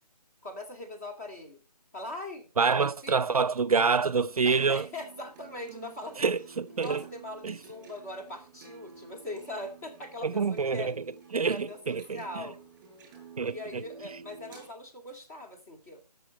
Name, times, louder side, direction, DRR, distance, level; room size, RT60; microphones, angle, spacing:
voice 1, 0.4-1.6 1.9-3.2 4.4-6.3 6.7-10.9 11.3-12.6 13.5-16.0, left 2 dB, 25° left, 2.4 m, -41 dB
voice 2, 2.6-4.9 6.2-7.0 7.4-7.5 10.2-10.9 11.3-12.2 13.4-13.8, right 5 dB, 60° right, 0.5 m, -26 dB
sound 1, 4.4-14.7, right 5 dB, 15° right, 3.6 m, -50 dB
18.0 x 6.8 x 4.2 m
figure-of-eight pair, 165°, 21 cm